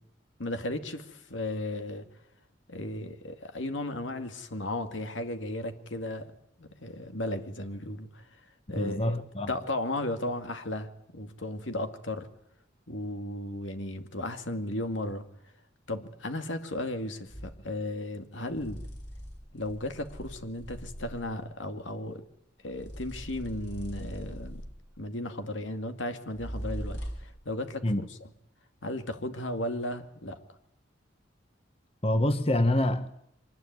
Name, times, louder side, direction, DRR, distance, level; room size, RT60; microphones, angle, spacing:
voice 1, 0.4-2.1 2.7-6.3 6.6-8.4 8.7-9.2 9.5-12.3 12.9-15.2 15.9-18.8 19.5-22.2 22.6-24.6 25.0-28.0 28.8-30.4, left 1 dB, 90° left, 2.4 m, -35 dB
voice 2, 8.8-9.5 27.8-28.1 32.0-33.1, left 1 dB, 30° left, 1.4 m, -26 dB
sound 1, 17.3-17.6 18.5-21.5 22.7-25.0 26.3-27.4, equal, 65° left, 6.3 m, -41 dB
24.5 x 19.5 x 9.7 m
head